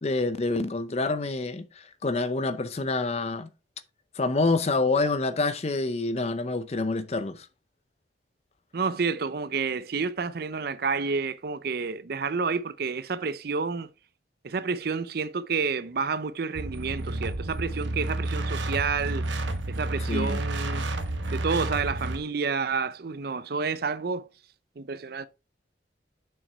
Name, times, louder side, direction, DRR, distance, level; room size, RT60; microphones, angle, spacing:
voice 1, 0.0-3.5 4.2-7.5 20.1-20.4, left 3 dB, 35° left, 0.6 m, -27 dB
voice 2, 8.7-13.9 14.4-19.2 19.7-20.8 21.3-24.3 24.8-25.3, right 5 dB, 55° right, 0.5 m, -29 dB
sound 1, 16.6-22.2, right 2 dB, 85° right, 1.1 m, -30 dB
6.9 x 5.9 x 3.4 m
head